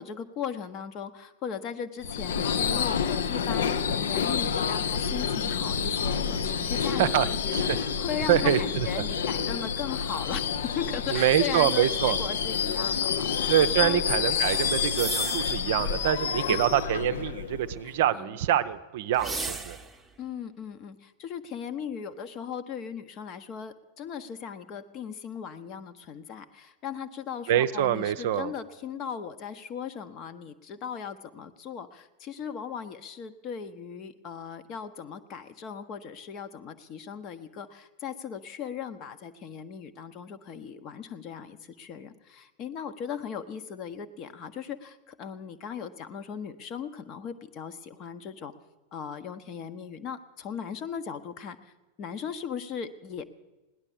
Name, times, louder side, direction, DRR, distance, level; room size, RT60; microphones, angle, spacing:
voice 1, 0.0-14.0 15.2-15.6 16.4-16.6 17.8-18.4 20.2-48.5 48.9-51.7 52.0-53.2, left 7 dB, 35° left, 10 dB, 0.9 m, -38 dB
Subway metro underground / Screech, 2.0-18.0, left 7 dB, 60° left, 0.6 m, -28 dB
voice 2, 6.9-7.8 8.3-8.9 11.1-12.2 13.5-19.8 27.5-28.5, right 11 dB, 55° right, 11 dB, 0.6 m, -25 dB
sound 1, 14.3-15.6 19.1-20.0, right 4 dB, 5° right, 1.0 m, -35 dB
16.5 x 10.5 x 7.1 m, 1.1 s
figure-of-eight pair, 90°, 0 cm